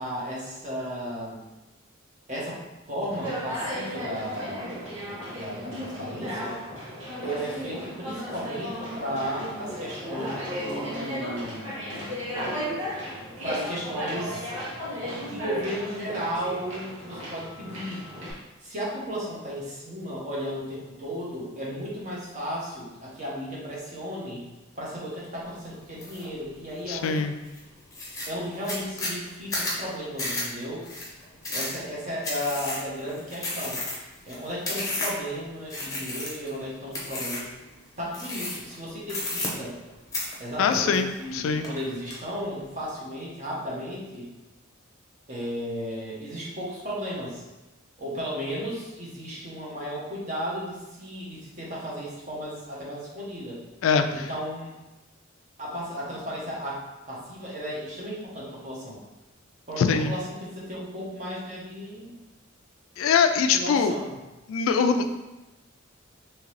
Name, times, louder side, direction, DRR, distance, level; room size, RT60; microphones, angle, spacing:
voice 1, 0.0-1.4 2.3-2.6 2.9-4.8 5.4-6.6 7.2-11.7 13.4-14.5 15.1-18.0 18.6-24.5 24.8-27.2 28.3-30.8 31.5-33.8 34.3-37.5 38.0-39.8 40.4-44.3 45.3-47.4 48.0-53.6 54.1-54.7 55.6-59.0 59.7-62.2 63.5-64.2, equal, 35° right, -5 dB, 1.1 m, -34 dB
Conversation, 3.1-18.3, equal, 85° right, 1.3 m, -35 dB
pencil sharpener, 26.0-26.3 26.7-27.2 27.6-27.7 27.9-35.3 35.7-36.5 36.9-37.5 38.1-38.7 39.0-39.9 40.1-41.3 41.6-42.2, left 2 dB, 15° left, 0.8 m, -32 dB
voice 2, 26.9-27.3 40.6-41.7 53.8-54.3 59.8-60.1 63.0-63.9 64.5-65.1, left 5 dB, 80° left, 8 dB, 0.3 m, -23 dB
3.6 x 2.8 x 3.2 m, 1.0 s
head